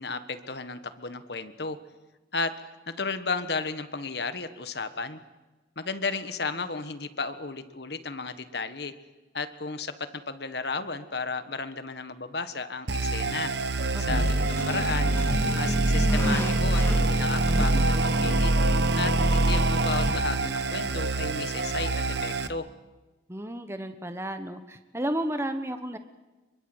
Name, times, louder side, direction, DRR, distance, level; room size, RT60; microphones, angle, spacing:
voice 1, 0.0-1.8 2.3-2.6 2.9-5.2 5.8-8.9 9.3-13.5 14.0-15.1 15.5-18.5 18.9-22.7, left 4 dB, 60° left, 11 dB, 1.5 m, -33 dB
sound 1, 12.9-22.5, right 2 dB, 65° right, 1.1 m, -25 dB
voice 2, 13.9-14.4 23.3-26.0, right 1 dB, 15° right, 8 dB, 1.1 m, -33 dB
sound 2, 14.1-19.2, equal, 15° left, 3.2 m, -36 dB
25.0 x 23.0 x 8.0 m, 1.2 s
head